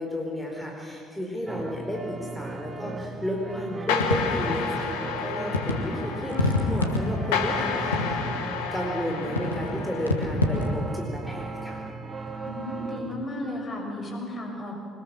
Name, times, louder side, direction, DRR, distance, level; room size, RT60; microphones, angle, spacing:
voice 1, 0.0-8.3 8.7-11.8, equal, 5° left, -1 dB, 4.5 m, -32 dB
sound 1, 1.5-13.3, right 3 dB, 25° right, 1.7 m, -38 dB
sound 2, 3.9-10.7, left 6 dB, 65° left, 1.7 m, -31 dB
sound 3, 4.0-4.6 5.5-5.8 6.3-7.4 7.9-8.4 9.4-9.7 10.1-10.7, left 2 dB, 85° left, 1.7 m, -26 dB
voice 2, 12.4-14.7, left 1 dB, 35° left, 1 dB, 6.5 m, -34 dB
24.5 x 20.0 x 7.4 m, 2.6 s
figure-of-eight pair, 50°, 0 cm